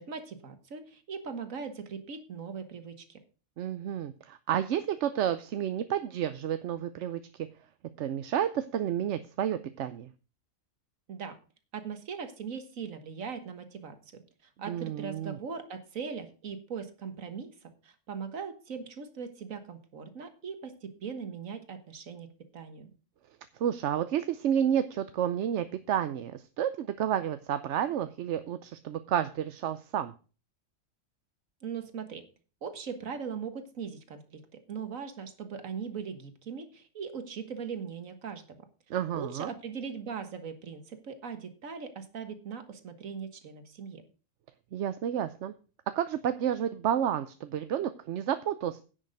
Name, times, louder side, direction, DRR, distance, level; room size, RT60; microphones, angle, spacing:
voice 1, 0.0-3.2 11.1-11.4 11.7-14.2 14.6-22.9 31.6-32.2 32.6-38.6 39.1-44.0, right 6 dB, 85° right, 8 dB, 1.8 m, -40 dB
voice 2, 3.6-7.5 8.0-10.1 14.7-15.4 23.6-30.1 38.9-39.5 44.7-45.5 45.9-48.8, right 10 dB, 65° right, 11 dB, 0.9 m, -30 dB
10.0 x 6.4 x 6.5 m, 0.36 s
omnidirectional pair, 1.3 m